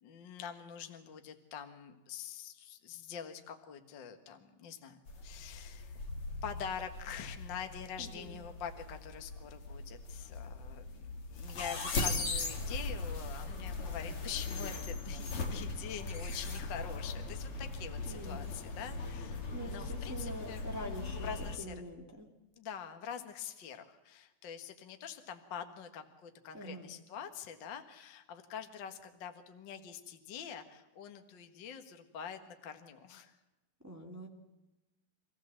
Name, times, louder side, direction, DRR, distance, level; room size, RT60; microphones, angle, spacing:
voice 1, 0.0-6.0 6.4-20.7 21.0-21.7 22.6-33.3, left 8 dB, 90° left, 6 dB, 1.0 m, -45 dB
sound 1, 5.1-21.6, left 3 dB, 45° left, 2.2 m, -39 dB
voice 2, 8.0-8.4 18.0-18.5 19.5-21.3 21.6-22.3 26.5-26.9 33.8-34.3, right 1 dB, 15° right, 2 dB, 0.6 m, -45 dB
26.5 x 15.5 x 7.6 m, 1.0 s
omnidirectional pair, 4.8 m